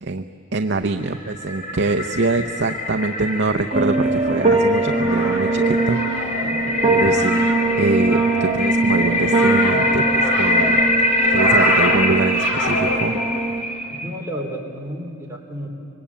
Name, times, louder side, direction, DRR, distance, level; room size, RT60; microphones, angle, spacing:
voice 1, 0.5-6.5 6.9-7.4 7.8-10.8 11.3-13.2, right 3 dB, 55° right, 7 dB, 0.7 m, -24 dB
sound 1, 0.8-14.1, left 1 dB, 35° left, 2.8 m, -24 dB
sound 2, 3.7-13.6, right 3 dB, 30° right, 1.5 m, -21 dB
sound 3, 4.7-13.4, left 1 dB, 65° left, 3.3 m, -28 dB
voice 2, 6.4-7.0 13.9-15.7, equal, 15° right, -2 dB, 3.3 m, -32 dB
25.5 x 21.5 x 8.5 m, 2.8 s
head